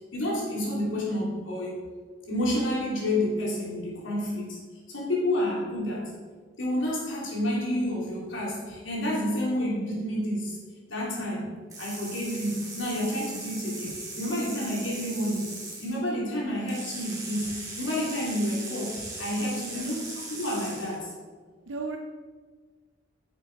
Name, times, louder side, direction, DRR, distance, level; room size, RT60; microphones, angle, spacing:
voice 1, 0.1-1.8 2.2-4.6 4.9-6.1 6.6-10.6 10.9-11.5 11.8-15.4 15.8-21.1, left 1 dB, 70° left, -4 dB, 3.1 m, -29 dB
sound 1, 11.7-16.0 16.7-21.0, right 2 dB, 20° right, 2.3 m, -39 dB
voice 2, 19.6-19.9 21.7-22.0, right 3 dB, 70° right, 3 dB, 0.7 m, -35 dB
9.9 x 6.8 x 4.7 m, 1.5 s
head